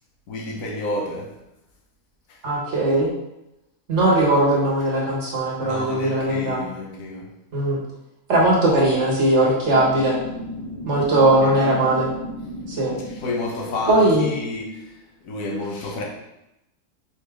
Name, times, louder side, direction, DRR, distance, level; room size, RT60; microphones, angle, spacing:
voice 1, 0.3-1.4 2.3-2.4 5.6-7.4 11.4-11.6 13.0-16.0, left 2 dB, 80° left, 1.2 m, -31 dB
voice 2, 2.4-3.1 3.9-6.6 7.5-7.8 8.3-10.2 10.9-12.1 12.7-13.0 13.9-14.3, right 1 dB, 60° right, 1.4 m, -19 dB
sound 1, 9.6-14.6, left 1 dB, 35° left, 0.6 m, -35 dB
4.3 x 3.2 x 3.5 m
omnidirectional pair, 1.4 m